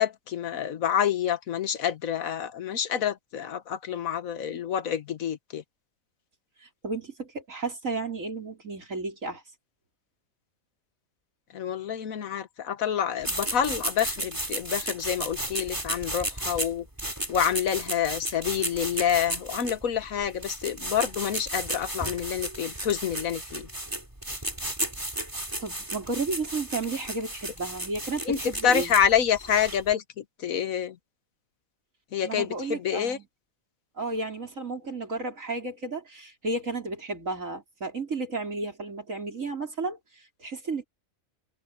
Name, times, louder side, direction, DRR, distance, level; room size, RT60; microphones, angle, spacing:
voice 1, 0.0-5.6 11.5-16.9 17.3-23.7 28.2-31.0 32.1-33.2, left 9 dB, 80° left, 1.5 m, -27 dB
voice 2, 6.6-9.4 25.6-28.9 32.2-33.2 34.0-40.8, right 3 dB, 70° right, 4.9 m, -33 dB
sound 1, 13.2-29.9, right 1 dB, 15° right, 2.8 m, -34 dB
omnidirectional pair, 1.4 m